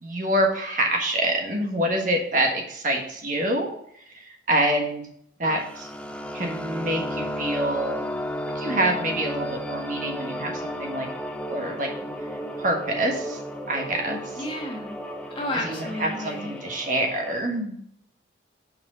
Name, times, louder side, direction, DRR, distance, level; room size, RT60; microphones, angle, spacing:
voice 1, 0.0-3.7 4.1-5.0 5.4-5.9 6.3-8.0 8.5-11.1 11.5-11.9 12.6-13.4 13.7-14.4 15.5-17.8, right 1 dB, 45° right, 2 dB, 1.5 m, -26 dB
sound 1, 5.4-17.4, equal, 5° left, 0.5 m, -34 dB
voice 2, 14.4-15.0 15.3-16.5, left 1 dB, 30° left, 0 dB, 1.6 m, -31 dB
6.3 x 4.8 x 6.3 m, 0.68 s
head